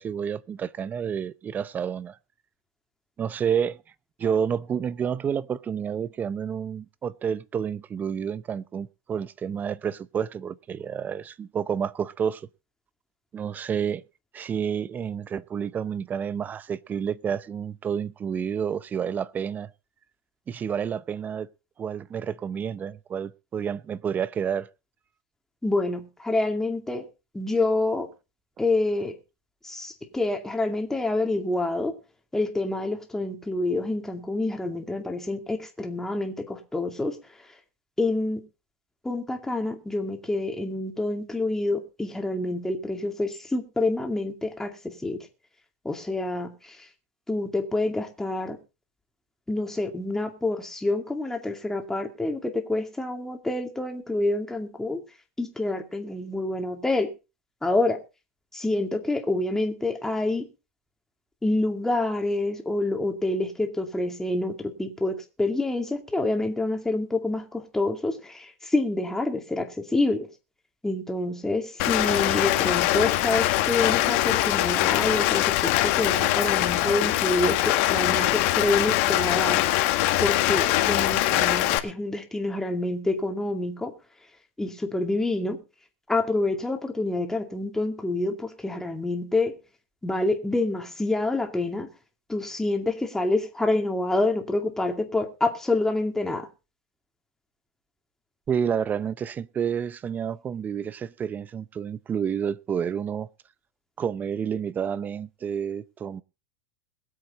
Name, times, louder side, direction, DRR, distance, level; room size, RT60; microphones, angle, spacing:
voice 1, 0.0-2.2 3.2-3.8 4.2-12.4 13.3-14.0 14.3-19.7 20.5-21.5 21.8-24.7 98.5-103.3 104.0-106.2, right 7 dB, 20° right, 0.7 m, -29 dB
voice 2, 25.6-27.0 27.3-28.1 28.6-29.2 29.6-31.9 32.3-37.2 38.0-38.4 39.0-45.2 45.8-46.9 47.3-48.6 49.5-55.0 55.4-57.1 57.6-58.0 58.5-60.5 61.4-70.3 70.8-83.9 84.6-85.6 86.1-89.6 90.0-91.9 92.3-96.5, left 2 dB, 5° left, 2.3 m, -27 dB
Rain, 71.8-81.8, left 16 dB, 55° left, 1.6 m, -23 dB
21.5 x 8.1 x 4.2 m
supercardioid pair, 135°, 8 cm